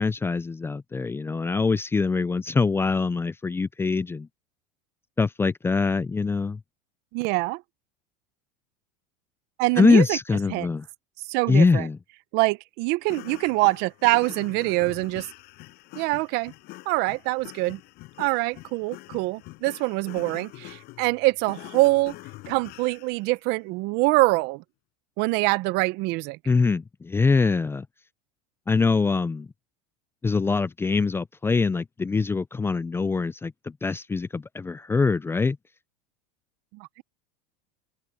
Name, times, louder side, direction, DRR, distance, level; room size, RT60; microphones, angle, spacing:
voice 1, 0.0-4.3 5.2-6.6 9.8-10.8 11.5-12.0 26.5-27.9 28.7-29.5 30.2-33.5 33.8-35.6, left 4 dB, 10° left, 0.5 m, -23 dB
voice 2, 7.1-7.6 9.6-10.2 10.5-10.7 11.3-11.9 12.3-15.3 15.9-16.5 16.9-17.8 18.2-22.1 22.5-24.6 25.2-26.4 36.7-37.0, right 22 dB, 55° right, 0.9 m, -24 dB
sound 1, 13.0-23.2, left 21 dB, 55° left, 5.5 m, -44 dB
open air
supercardioid pair, 115°, 19 cm